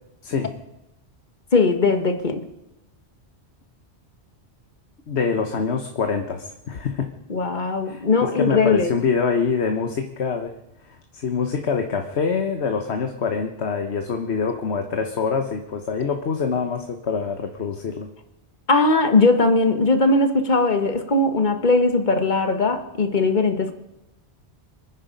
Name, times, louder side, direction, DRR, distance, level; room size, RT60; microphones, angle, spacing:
voice 1, 0.2-0.6 5.1-7.1 7.9-10.6 10.9-18.1, left 5 dB, 75° left, 5 dB, 1.4 m, -25 dB
voice 2, 1.5-2.4 7.3-8.9 18.7-23.7, left 3 dB, 45° left, 7 dB, 1.5 m, -19 dB
26.0 x 9.6 x 5.3 m, 0.92 s
omnidirectional pair, 1.1 m